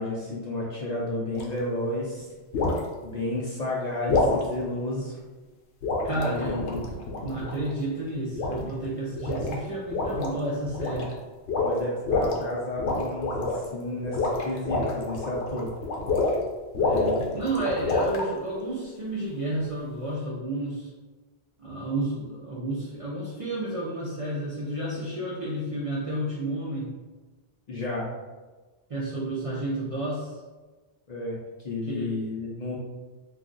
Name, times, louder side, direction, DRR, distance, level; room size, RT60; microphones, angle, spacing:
voice 1, 0.0-2.3 3.0-5.2 6.1-6.8 11.6-15.7 27.7-28.1 31.1-32.8, left 1 dB, 50° left, -4 dB, 0.5 m, -32 dB
sound 1, 1.3-1.6 2.5-2.9 4.1-4.4 5.8-7.7 8.3-8.8 9.1-9.6 9.9-10.3 10.6-11.1 11.5-12.4 12.8-13.7 14.0-16.4 16.7-18.3, left 3 dB, 85° left, 0.9 m, -27 dB
voice 2, 6.0-6.6 7.2-11.1 16.8-20.9 21.6-26.9 28.9-30.3 31.9-32.2, right 2 dB, 50° right, -6 dB, 0.4 m, -31 dB
2.4 x 2.3 x 3.7 m, 1.3 s
omnidirectional pair, 1.1 m